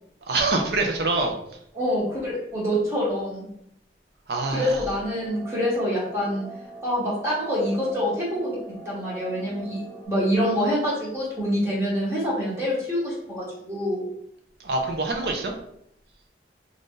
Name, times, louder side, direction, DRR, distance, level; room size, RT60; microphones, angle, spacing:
voice 1, 0.3-1.3 4.3-4.7 14.6-15.5, right 3 dB, 65° right, 3 dB, 0.5 m, -25 dB
voice 2, 1.7-3.5 4.5-6.4 6.8-8.6 8.8-9.8 10.1-14.1, equal, 15° right, -7 dB, 0.9 m, -26 dB
sound 1, 4.5-10.1, right 2 dB, 25° left, 0.7 m, -42 dB
2.6 x 2.5 x 3.6 m, 0.74 s
head